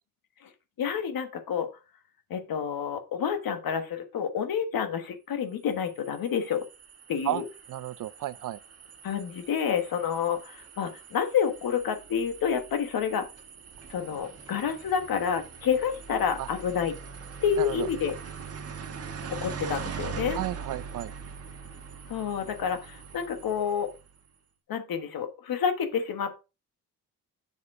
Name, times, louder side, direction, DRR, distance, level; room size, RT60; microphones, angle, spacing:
voice 1, 0.8-1.7 2.3-6.7 7.1-7.5 9.0-13.3 13.9-16.9 17.4-18.1 19.3-20.4 22.1-23.9 24.7-26.4, left 7 dB, 75° left, 1.4 m, -29 dB
sound 1, 5.7-24.2, right 6 dB, 45° right, 1.2 m, -42 dB
voice 2, 7.7-8.6 16.4-16.5 17.6-17.9 20.3-21.1, right 13 dB, 60° right, 0.5 m, -32 dB
7.1 x 6.8 x 3.7 m
wide cardioid pair, 180°, 36 cm